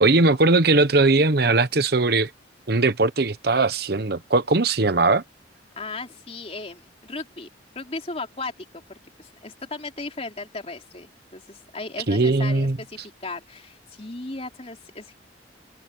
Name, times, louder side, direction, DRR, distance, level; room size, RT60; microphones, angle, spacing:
voice 1, 0.0-2.3 2.7-5.2 12.1-12.8, right 3 dB, 55° right, 1.0 m, -19 dB
voice 2, 5.8-7.5 7.8-15.1, left 3 dB, 35° left, 3.6 m, -36 dB
head